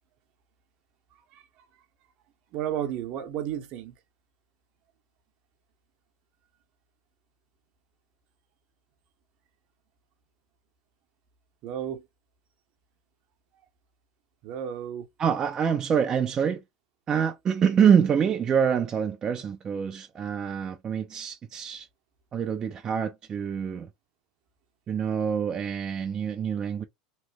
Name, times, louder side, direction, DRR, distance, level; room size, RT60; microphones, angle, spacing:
voice 1, 2.5-3.9 11.6-12.0 14.4-15.1, right 10 dB, 55° right, 0.8 m, -32 dB
voice 2, 15.2-16.6 17.1-21.9 22.3-23.9 24.9-26.8, right 7 dB, 30° right, 0.4 m, -25 dB
3.0 x 2.1 x 3.3 m
supercardioid pair, 125°, 2 cm